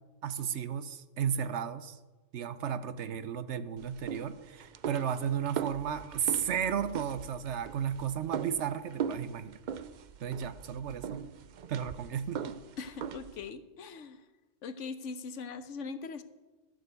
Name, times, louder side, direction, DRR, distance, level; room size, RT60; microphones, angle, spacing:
voice 1, 0.2-2.0 2.3-9.6 10.2-11.3 11.7-12.6, right 8 dB, 70° right, 13 dB, 1.0 m, -34 dB
sound 1, 3.8-13.5, right 8 dB, 55° right, 0.5 m, -40 dB
voice 2, 12.8-14.2 14.6-16.2, left 4 dB, 75° left, 11 dB, 1.2 m, -41 dB
13.0 x 6.6 x 8.1 m, 1.2 s
omnidirectional pair, 1.3 m